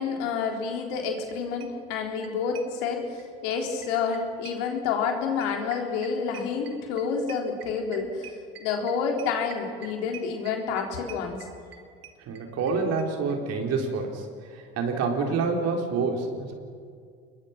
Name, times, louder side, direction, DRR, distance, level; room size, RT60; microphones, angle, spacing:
voice 1, 0.0-11.4, left 5 dB, 75° left, 2 dB, 3.7 m, -29 dB
sound 1, 1.0-1.1 1.3-1.4 1.6-3.2 3.5-12.7 13.0-13.1 13.3-13.4 13.6-13.7, right 8 dB, 90° right, 1.8 m, -45 dB
voice 2, 12.2-16.5, right 4 dB, 60° right, 2 dB, 4.3 m, -28 dB
27.5 x 21.5 x 6.0 m, 2.2 s
hypercardioid pair, 70°, 29 cm